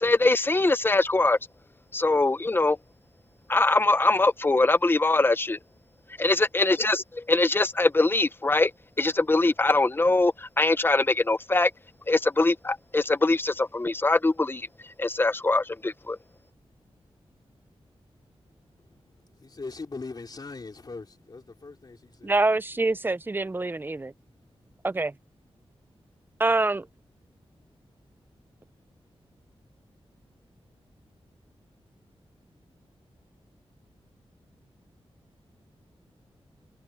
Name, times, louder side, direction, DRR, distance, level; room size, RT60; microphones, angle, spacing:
voice 1, 0.0-1.4 1.9-2.8 3.5-5.6 6.2-8.7 9.0-11.7 12.1-14.7 15.0-16.2, left 2 dB, 20° left, 0.8 m, -22 dB
voice 2, 19.4-22.5, left 3 dB, 40° left, 3.4 m, -40 dB
voice 3, 22.2-24.1 24.8-25.1 26.4-26.9, right 2 dB, 20° right, 0.6 m, -25 dB
wide cardioid pair, 115°, 10 cm